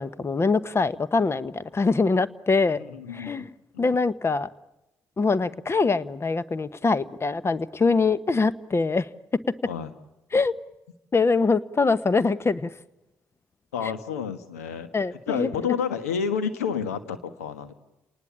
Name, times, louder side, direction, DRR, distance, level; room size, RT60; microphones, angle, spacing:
voice 1, 0.0-2.8 3.1-3.5 3.8-4.5 5.2-9.1 10.3-10.5 11.1-12.7 13.8-13.9 14.9-15.5, left 4 dB, 35° left, 17 dB, 1.1 m, -23 dB
voice 2, 2.8-3.5 3.7-3.9 9.7-9.9 13.7-14.9 15.3-17.7, left 7 dB, 90° left, 11 dB, 1.5 m, -30 dB
30.0 x 19.5 x 8.7 m, 0.98 s
hypercardioid pair, 45°, 8 cm